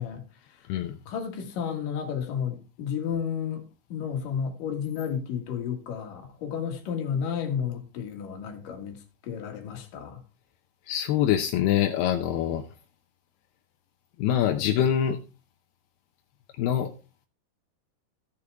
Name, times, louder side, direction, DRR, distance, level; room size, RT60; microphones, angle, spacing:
voice 1, 0.0-0.7 1.1-10.2, left 7 dB, 60° left, 3.3 m, -32 dB
voice 2, 10.9-12.6 14.2-15.2 16.6-16.9, left 10 dB, 80° left, 2.8 m, -24 dB
16.5 x 6.8 x 3.5 m
omnidirectional pair, 4.6 m